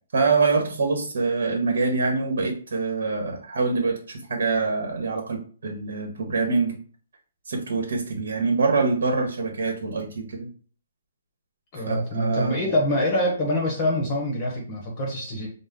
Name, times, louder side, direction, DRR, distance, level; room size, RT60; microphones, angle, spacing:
voice 1, 0.1-6.8 7.4-10.5 11.9-12.7, right 4 dB, 65° right, 2 dB, 1.1 m, -25 dB
voice 2, 11.7-15.5, left 1 dB, 25° left, -1 dB, 0.8 m, -25 dB
5.2 x 2.0 x 3.6 m, 0.42 s
hypercardioid pair, 170°, 0 cm